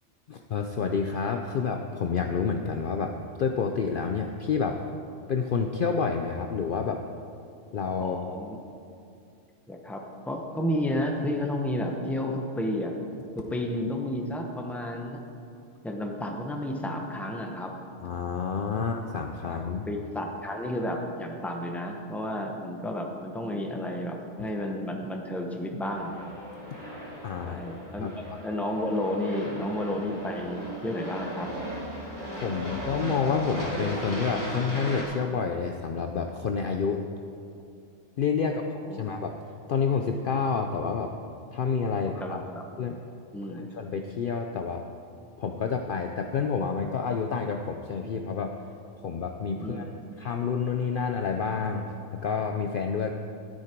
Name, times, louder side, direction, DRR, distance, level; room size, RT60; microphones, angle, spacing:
voice 1, 0.3-3.1 3.4-4.8 5.3-7.0 7.7-8.2 18.0-19.9 27.2-27.6 28.0-28.4 32.4-37.0 38.2-39.4 39.7-41.1 41.5-42.4 42.8-43.0 43.4-44.8 45.4-48.6 49.0-53.1, left 5 dB, 55° left, 4 dB, 0.7 m, -29 dB
voice 2, 8.0-8.6 9.7-12.9 13.3-15.2 15.8-17.8 18.8-18.9 19.4-26.3 27.4-31.5 38.9-39.0 41.9-42.6 43.3-43.6 49.6-49.9, left 1 dB, ahead, 2 dB, 0.9 m, -32 dB
Aircraft, 25.8-35.0, equal, 20° right, 3.1 m, -37 dB
12.5 x 9.7 x 4.5 m, 2.5 s
omnidirectional pair, 1.3 m